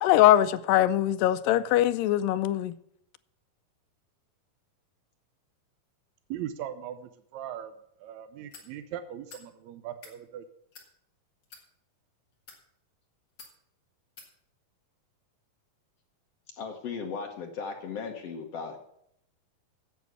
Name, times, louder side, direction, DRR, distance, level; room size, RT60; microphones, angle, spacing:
voice 1, 0.0-2.7, left 13 dB, 85° left, 2.2 m, -22 dB
voice 2, 6.3-7.7 8.0-10.4, right 10 dB, 80° right, 1.6 m, -39 dB
sound 1, 8.5-8.7 9.3-9.5 9.9-10.2 10.7-10.9 11.4-11.6 12.3-12.6 13.4-13.5 14.2-14.3, left 4 dB, 40° left, 2.1 m, -49 dB
voice 3, 16.6-18.8, left 5 dB, 65° left, 1.7 m, -36 dB
9.2 x 7.8 x 8.1 m
omnidirectional pair, 4.0 m